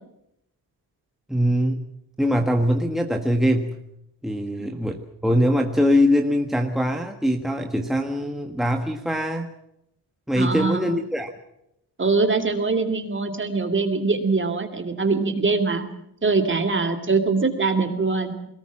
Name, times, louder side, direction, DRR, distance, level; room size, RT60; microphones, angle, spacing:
voice 1, 1.3-1.8 2.2-3.7 4.2-9.5 10.3-11.3, equal, ahead, 3 dB, 1.5 m, -22 dB
voice 2, 10.4-10.9 12.0-15.8 16.2-18.3, right 4 dB, 30° right, 5 dB, 2.8 m, -23 dB
21.5 x 19.0 x 7.4 m, 0.81 s
wide cardioid pair, 105°, 38 cm